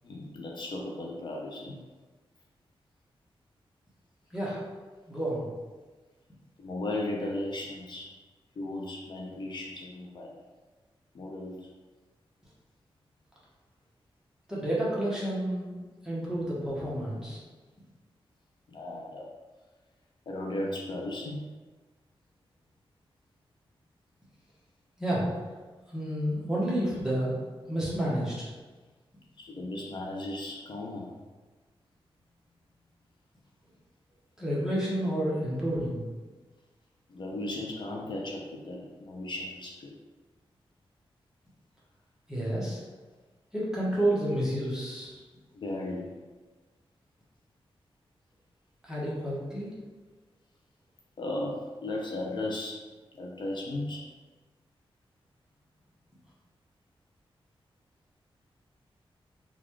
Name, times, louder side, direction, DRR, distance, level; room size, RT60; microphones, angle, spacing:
voice 1, 0.0-1.8 6.6-8.1 8.6-10.3 11.1-11.7 18.7-19.3 20.3-21.4 29.4-31.1 37.1-39.9 45.5-46.2 51.2-52.9 53.1-54.1, left 1 dB, 50° left, -1 dB, 0.5 m, -36 dB
voice 2, 4.3-4.6 5.1-5.4 14.5-15.8 16.0-17.4 25.0-25.3 25.9-27.4 27.7-28.5 34.4-36.0 42.3-42.8 43.5-45.2 48.8-49.7, right 1 dB, 5° right, -7 dB, 1.0 m, -30 dB
3.9 x 2.3 x 3.1 m, 1.3 s
wide cardioid pair, 125°, 10 cm